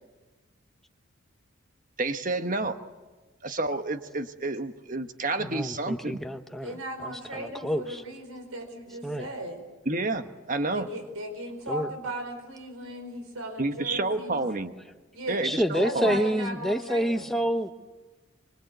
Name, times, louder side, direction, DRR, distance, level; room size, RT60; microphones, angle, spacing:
voice 1, 2.0-2.8 3.4-6.2 9.8-10.9 13.6-14.7 15.3-16.2, right 2 dB, 40° right, 8 dB, 1.2 m, -29 dB
voice 2, 5.4-8.0 9.0-9.3 11.7-11.9 15.4-17.7, equal, ahead, 6 dB, 1.0 m, -28 dB
voice 3, 6.6-9.6 10.7-14.5 15.1-15.5 15.8-17.3, right 1 dB, 90° right, 6 dB, 4.8 m, -37 dB
24.5 x 23.0 x 8.0 m, 1.2 s
head